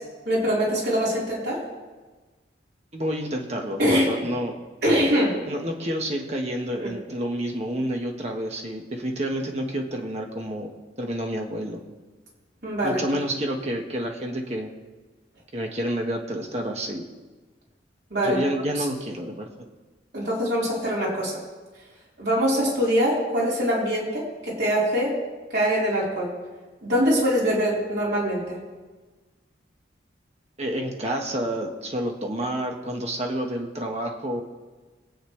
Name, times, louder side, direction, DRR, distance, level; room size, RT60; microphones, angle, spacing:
voice 1, 0.2-1.6 3.8-4.3 4.8-5.4 6.8-6.9 12.6-13.0 18.1-18.4 18.7-18.8 20.1-21.4 22.2-25.2 25.5-26.3 26.8-28.6, equal, 55° right, -6 dB, 4.5 m, -23 dB
voice 2, 2.9-4.5 5.5-10.7 11.0-11.8 12.8-14.7 15.5-17.1 18.2-19.5 30.6-34.4, right 1 dB, 35° right, 1 dB, 1.6 m, -29 dB
23.5 x 9.0 x 3.4 m, 1.3 s
head